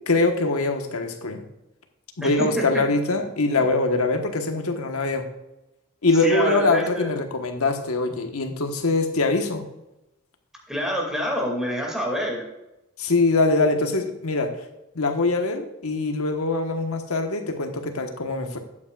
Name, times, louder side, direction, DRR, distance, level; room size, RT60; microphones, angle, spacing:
voice 1, 0.1-1.4 2.2-5.2 6.0-9.6 13.0-14.5 14.9-18.6, left 3 dB, 85° left, 5 dB, 1.3 m, -23 dB
voice 2, 2.2-2.8 3.6-3.7 6.2-7.2 10.7-12.4, equal, 5° right, -1 dB, 2.3 m, -27 dB
12.0 x 8.6 x 2.4 m, 0.93 s
head